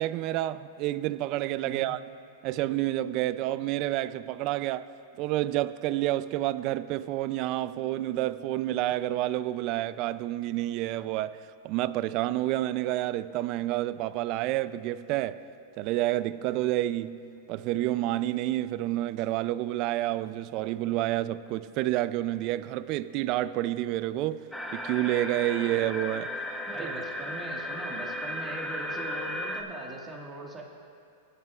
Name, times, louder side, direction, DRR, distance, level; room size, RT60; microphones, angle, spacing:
voice 1, 0.0-2.0 2.4-4.9 5.2-11.4 11.6-15.4 15.8-17.2 17.5-24.4 24.7-26.3 26.8-26.9, right 15 dB, 45° right, 0.4 m, -29 dB
sound 1, 24.5-29.6, left 1 dB, 5° left, 0.9 m, -35 dB
voice 2, 26.7-30.6, right 2 dB, 15° right, 1.7 m, -40 dB
20.0 x 11.0 x 2.4 m
supercardioid pair, 140°, 0 cm